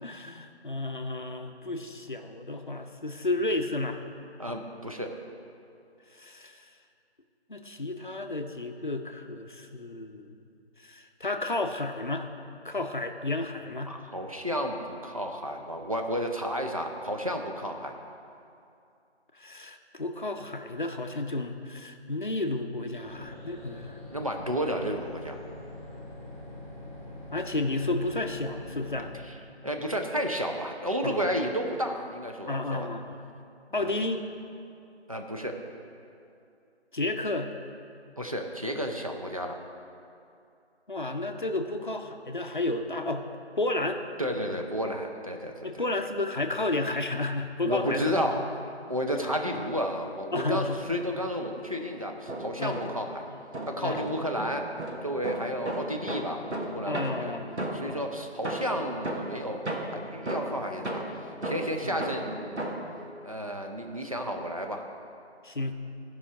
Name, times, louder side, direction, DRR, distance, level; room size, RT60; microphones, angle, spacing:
voice 1, 0.0-4.0 6.1-6.7 7.5-10.3 10.8-12.3 12.6-14.0 19.3-24.0 27.3-29.1 31.0-31.2 32.5-33.2 33.7-34.3 36.9-37.5 40.9-43.3 43.6-44.0 45.6-48.3 49.2-49.3 50.3-50.9 52.6-52.8 53.8-54.0 56.9-58.0 61.8-62.0 65.4-65.7, left 2 dB, 45° left, 6 dB, 0.7 m, -32 dB
voice 2, 4.4-5.1 13.9-17.9 24.1-25.4 29.6-32.9 33.8-33.9 35.1-35.6 38.2-39.6 44.2-45.8 47.6-48.4 48.9-53.2 53.7-54.7 55.0-56.4 56.7-57.3 57.7-61.0 61.4-62.6 63.2-64.8, equal, 30° right, 3 dB, 0.7 m, -32 dB
sound 1, 23.0-29.1, left 1 dB, 10° right, 2.1 m, -44 dB
sound 2, 52.1-53.2 53.5-58.0 58.4-63.0, right 1 dB, 80° right, 1.5 m, -35 dB
14.0 x 5.6 x 4.9 m, 2.5 s
figure-of-eight pair, 170°, 34 cm